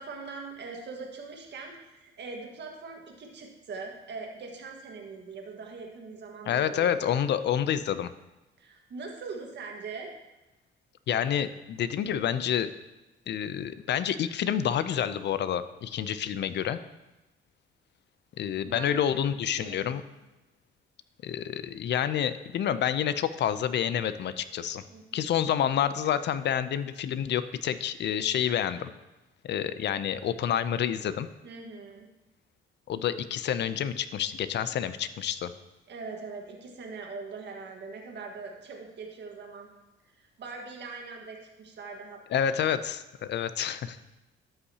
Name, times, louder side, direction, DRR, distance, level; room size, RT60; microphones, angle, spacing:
voice 1, 0.0-7.2 8.6-10.1 18.7-18.9 19.6-19.9 24.9-25.4 31.4-32.1 35.9-39.7 40.1-42.6, right 4 dB, 60° right, 1 dB, 1.6 m, -42 dB
voice 2, 6.5-8.1 11.1-12.7 13.3-16.8 18.4-20.0 21.2-24.8 25.1-28.9 29.4-31.3 32.9-35.5 42.3-44.0, left 9 dB, 60° left, 13 dB, 0.5 m, -28 dB
13.0 x 5.5 x 2.9 m, 1.0 s
cardioid pair, 90°, 20 cm